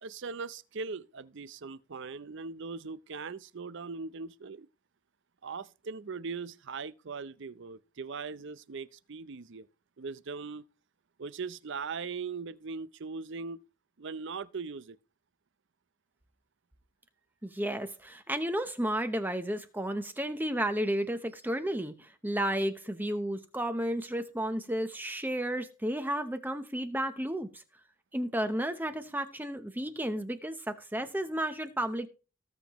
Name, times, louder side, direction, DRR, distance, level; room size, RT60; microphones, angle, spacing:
voice 1, 0.0-4.7 5.4-9.7 10.0-10.6 11.2-13.7 14.0-15.0, right 4 dB, 60° right, 0.6 m, -40 dB
voice 2, 17.4-27.6 28.1-32.1, right 1 dB, 10° right, 0.8 m, -32 dB
18.5 x 7.2 x 3.0 m
head